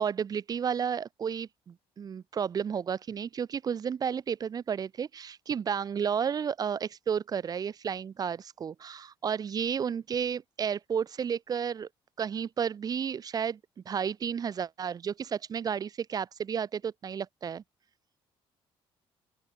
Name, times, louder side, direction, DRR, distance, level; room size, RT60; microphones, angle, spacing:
voice 1, 0.0-11.9 12.2-13.6 13.9-17.6, right 7 dB, 40° right, 2.4 m, -32 dB
open air
cardioid pair, 140°, 10 cm